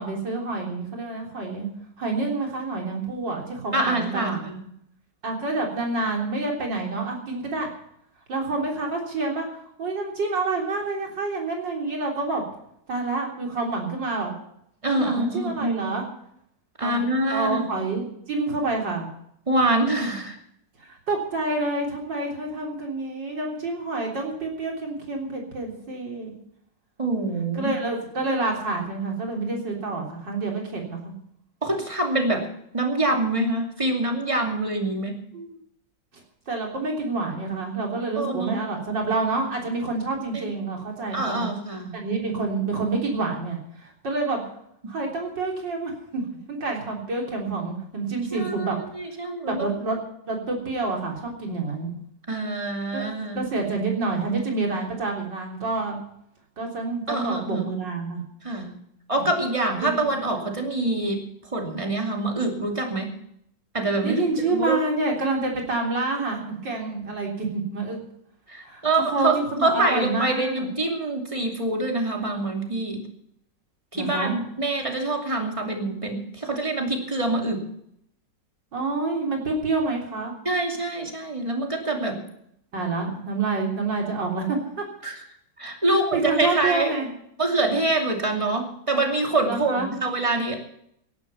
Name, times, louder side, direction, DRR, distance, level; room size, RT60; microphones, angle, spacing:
voice 1, 0.0-1.7 2.0-4.5 5.2-7.7 8.3-9.5 9.8-12.4 12.9-14.3 14.9-16.0 16.8-19.1 20.8-26.3 27.5-31.1 35.3-35.5 36.5-41.5 41.9-44.4 44.9-46.2 46.5-48.8 49.4-51.9 52.9-53.1 53.4-56.0 56.6-58.2 59.2-59.3 59.8-60.0 64.0-68.0 68.6-68.8 69.1-70.7 73.9-74.3 78.7-80.3 82.7-84.8 85.9-87.1 89.5-89.9, right 3 dB, 75° right, 0 dB, 4.3 m, -28 dB
voice 2, 3.7-4.6 14.8-15.9 16.8-17.6 19.5-20.4 27.0-27.7 31.6-32.5 32.7-35.2 38.2-38.6 40.3-40.5 41.1-41.9 48.3-49.7 52.3-53.4 57.1-57.7 58.4-58.7 59.1-61.2 61.5-63.2 63.7-64.2 64.5-64.8 68.5-73.0 73.9-77.6 80.4-82.2 85.0-85.2 85.6-86.9 87.4-90.6, right 2 dB, 15° right, 2 dB, 2.7 m, -25 dB
17.0 x 11.5 x 5.7 m, 0.72 s
omnidirectional pair, 2.0 m